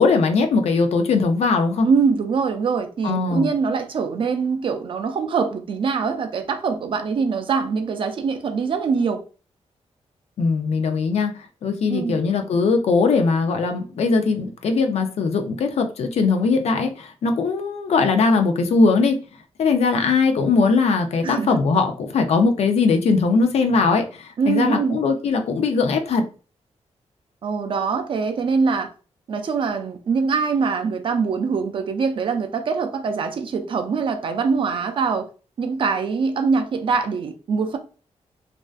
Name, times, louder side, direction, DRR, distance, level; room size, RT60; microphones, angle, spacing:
voice 1, 0.0-1.9 3.0-3.5 10.4-11.3 11.6-19.2 19.6-26.2, left 4 dB, 65° left, 0.4 m, -20 dB
voice 2, 1.8-9.2 11.9-12.2 21.2-21.5 24.4-25.0 27.4-28.9 29.3-35.3 35.6-37.8, right 5 dB, 50° right, 0.3 m, -23 dB
2.4 x 2.2 x 2.4 m
wide cardioid pair, 160°, 11 cm